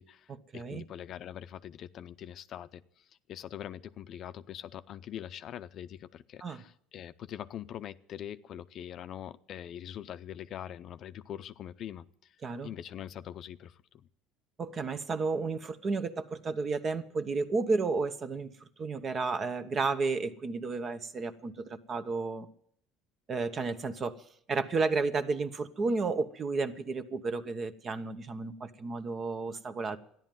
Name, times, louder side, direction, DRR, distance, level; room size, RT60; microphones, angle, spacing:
voice 1, 0.0-12.4 12.6-14.1, left 10 dB, 50° left, 12 dB, 0.6 m, -43 dB
voice 2, 0.5-0.8 6.4-6.6 12.4-12.7 14.6-22.5 23.3-24.2 24.5-30.0, right 4 dB, 35° right, 11 dB, 1.1 m, -32 dB
13.5 x 10.5 x 9.2 m, 0.67 s
supercardioid pair, 105°, 0 cm